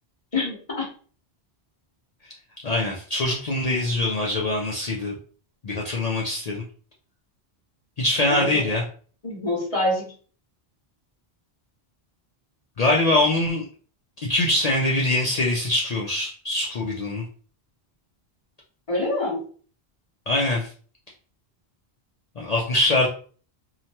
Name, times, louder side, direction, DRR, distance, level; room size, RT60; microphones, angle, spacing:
voice 1, 0.3-0.9 8.3-8.6 9.2-10.1 18.9-19.4, left 1 dB, 35° left, -4 dB, 1.1 m, -26 dB
voice 2, 2.6-5.1 5.6-6.6 8.0-8.8 12.8-13.6 14.2-17.2 20.3-20.7 22.4-23.1, left 2 dB, 50° left, -2 dB, 0.5 m, -23 dB
2.8 x 2.1 x 2.8 m, 0.42 s
omnidirectional pair, 1.1 m